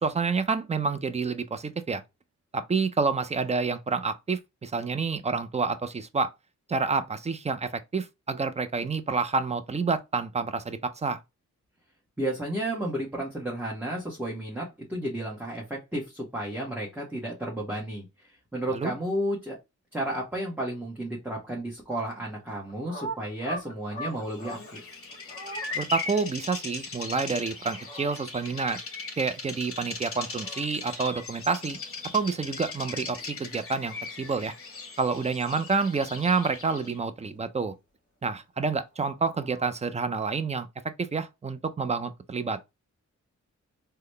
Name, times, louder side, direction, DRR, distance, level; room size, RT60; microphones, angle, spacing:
voice 1, 0.0-2.0 2.5-6.3 6.7-11.2 18.7-18.9 25.7-28.8 29.2-31.8 32.1-34.5 35.0-37.7 38.2-40.7 41.0-42.6, right 4 dB, 20° right, 0.5 m, -28 dB
voice 2, 12.2-19.6 19.9-24.8, right 1 dB, 5° right, 1.1 m, -32 dB
sound 1, 22.6-24.7 25.1-25.8 27.4-28.1 29.8-30.7 31.0-31.2 33.3-34.0 35.6-36.5 38.9-39.7, right 1 dB, 25° left, 1.4 m, -42 dB
Bird vocalization bird call bird song, 24.3-37.0, left 4 dB, 45° left, 0.9 m, -39 dB
3.8 x 2.2 x 3.2 m
wide cardioid pair, 95°, 30 cm